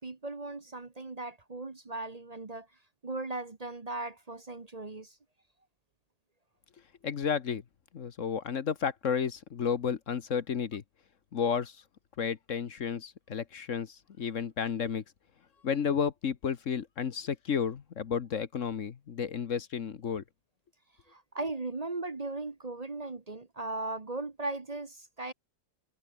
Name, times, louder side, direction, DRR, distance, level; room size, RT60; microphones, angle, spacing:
voice 1, 0.0-2.7 3.0-5.2 21.1-25.3, right 2 dB, 25° right, 0.9 m, -38 dB
voice 2, 7.0-7.6 7.9-10.8 11.3-11.8 12.2-15.0 15.6-20.2, left 7 dB, 45° left, 1.2 m, -32 dB
omnidirectional pair, 2.1 m